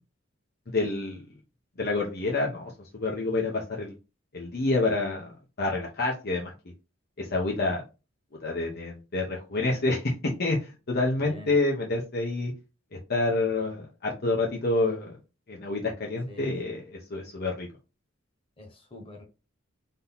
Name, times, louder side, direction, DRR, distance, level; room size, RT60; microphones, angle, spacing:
voice 1, 0.7-1.2 1.8-3.9 4.3-6.5 7.2-7.8 8.4-12.5 13.1-15.2 15.5-17.7, left 2 dB, 55° left, -1 dB, 0.9 m, -28 dB
voice 2, 11.2-11.5 16.3-16.8 18.6-19.2, left 2 dB, 30° left, 2 dB, 1.3 m, -46 dB
3.8 x 2.8 x 3.9 m, 0.29 s
head